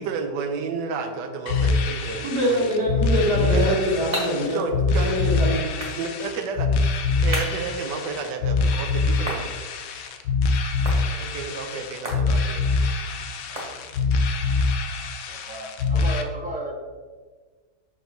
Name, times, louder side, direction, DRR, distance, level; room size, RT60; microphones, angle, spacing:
voice 1, 0.0-3.8 4.5-5.1 6.0-6.7 7.2-9.5 11.2-12.6, right 5 dB, 90° right, 5 dB, 1.3 m, -32 dB
sound 1, 1.5-16.2, left 3 dB, 85° left, 1.3 m, -24 dB
voice 2, 2.2-4.6 5.0-5.6, equal, 70° right, -4 dB, 2.3 m, -23 dB
sound 2, 3.4-14.3, right 1 dB, 25° right, 1.4 m, -39 dB
voice 3, 15.3-16.7, right 1 dB, 10° right, 0 dB, 0.5 m, -34 dB
6.0 x 4.8 x 3.9 m, 1.4 s
omnidirectional pair, 1.8 m